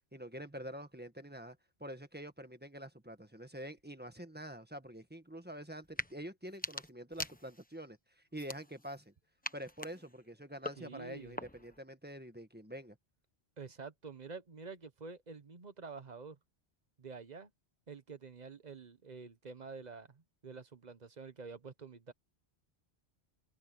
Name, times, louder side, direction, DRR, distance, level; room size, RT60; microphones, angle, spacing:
voice 1, 0.1-9.1 9.5-13.0, equal, 10° right, 1.6 m, -47 dB
sound 1, 5.8-6.1 6.5-7.8 8.3-9.0 9.4-11.8, left 1 dB, 10° left, 1.1 m, -44 dB
voice 2, 10.8-11.4 13.6-16.4 17.0-17.5 17.9-22.1, right 4 dB, 40° right, 1.1 m, -48 dB
open air
omnidirectional pair, 1.1 m